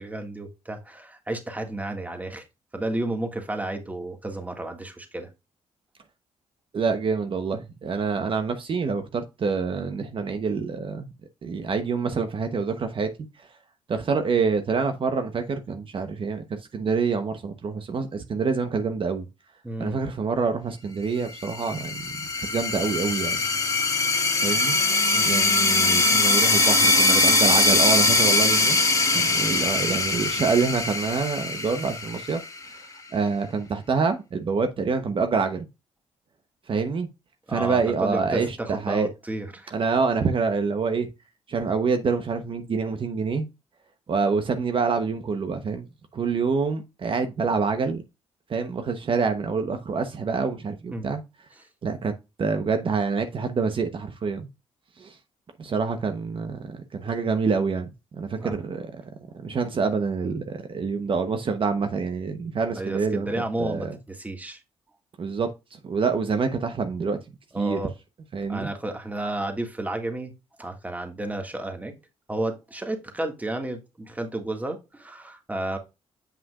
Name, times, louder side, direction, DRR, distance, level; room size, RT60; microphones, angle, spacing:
voice 1, 0.0-2.4 2.7-5.3 19.6-20.0 25.1-25.4 37.5-39.7 50.9-51.1 58.4-58.6 62.8-64.6 67.5-67.9 68.5-70.3 70.6-71.9 72.3-75.8, right 1 dB, 15° right, 1.9 m, -32 dB
voice 2, 6.7-11.1 11.4-13.1 13.9-19.2 19.8-23.4 24.4-24.8 25.2-28.8 29.1-32.4 32.7-35.7 36.7-37.1 37.5-39.1 39.7-41.1 41.5-43.5 44.1-45.9 46.1-48.0 48.5-51.2 51.8-52.1 52.4-54.5 55.0-55.2 55.6-59.0 59.4-63.3 63.6-63.9 65.2-65.5 65.8-67.2 67.6-67.8 68.3-68.7, right 5 dB, 50° right, 1.0 m, -26 dB
sound 1, 21.4-32.7, left 2 dB, 25° left, 1.8 m, -22 dB
7.6 x 5.8 x 2.4 m
cardioid pair, 75°, 12 cm